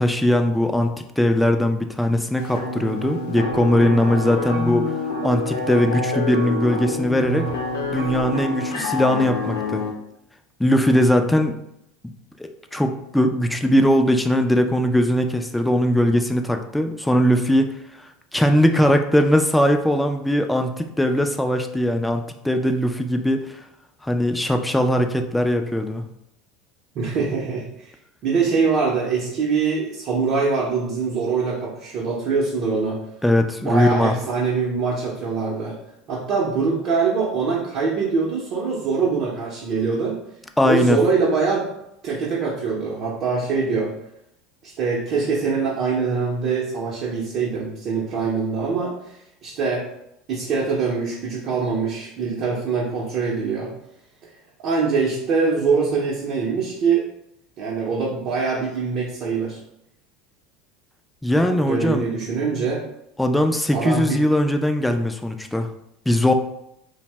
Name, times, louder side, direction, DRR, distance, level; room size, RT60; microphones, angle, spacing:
voice 1, 0.0-4.9 5.2-7.5 7.9-9.8 10.6-11.6 12.0-12.1 12.4-17.7 18.3-23.6 24.0-26.1 33.2-34.2 40.6-41.0 61.2-62.0 63.2-65.7 66.1-66.3, left 1 dB, 5° left, 6 dB, 0.3 m, -20 dB
sound 1, 2.4-9.9, left 2 dB, 85° left, 0.6 m, -27 dB
voice 2, 26.9-27.9 28.2-33.0 33.5-35.8 36.1-40.2 40.6-41.7 42.0-43.9 44.6-49.0 49.4-49.9 50.3-53.7 54.6-57.0 57.6-59.6 61.4-62.8 63.7-64.2, right 4 dB, 50° right, -4 dB, 0.6 m, -23 dB
2.6 x 2.0 x 3.2 m, 0.79 s
hypercardioid pair, 80°, 0 cm